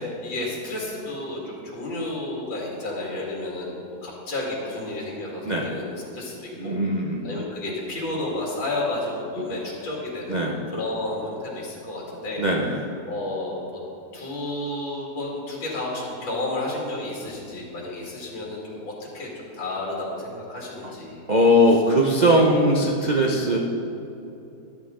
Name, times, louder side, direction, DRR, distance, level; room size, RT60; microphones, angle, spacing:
voice 1, 0.0-6.7 7.2-12.5 13.1-13.6 14.1-21.2 22.1-22.6, left 2 dB, 90° left, -3 dB, 3.0 m, -31 dB
voice 2, 6.6-7.2 10.3-10.5 12.4-12.8 20.8-20.9 21.3-23.6, equal, 40° right, -1 dB, 0.6 m, -20 dB
13.5 x 12.0 x 3.8 m, 2.9 s
omnidirectional pair, 2.0 m